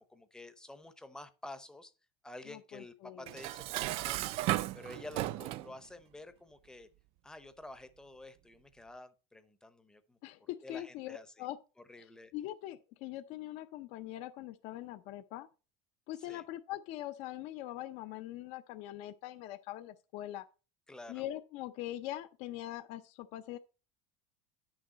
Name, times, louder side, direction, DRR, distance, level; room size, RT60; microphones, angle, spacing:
voice 1, 0.0-1.9 2.2-6.9 7.2-11.5 11.9-12.3 16.2-16.4 20.9-21.3, left 2 dB, 5° left, 0.7 m, -50 dB
voice 2, 2.5-3.3 10.2-11.6 12.3-15.5 16.1-20.4 21.1-23.6, left 14 dB, 50° left, 0.6 m, -42 dB
Dishes pots and pans, 3.3-5.7, right 16 dB, 40° right, 0.4 m, -35 dB
10.5 x 6.4 x 4.1 m
supercardioid pair, 160°, 15 cm